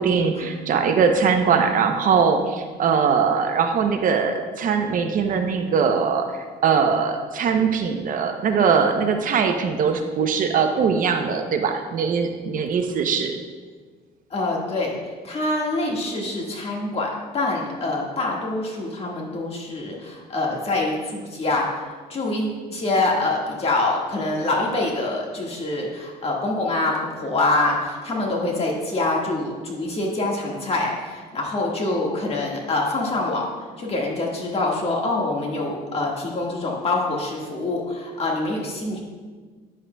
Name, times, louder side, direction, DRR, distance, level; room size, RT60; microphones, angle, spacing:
voice 1, 0.0-13.4, right 6 dB, 55° right, 6 dB, 0.7 m, -21 dB
voice 2, 14.3-39.0, left 2 dB, 35° left, -1 dB, 1.7 m, -25 dB
9.7 x 7.6 x 2.2 m, 1.5 s
cardioid pair, 110°, 17 cm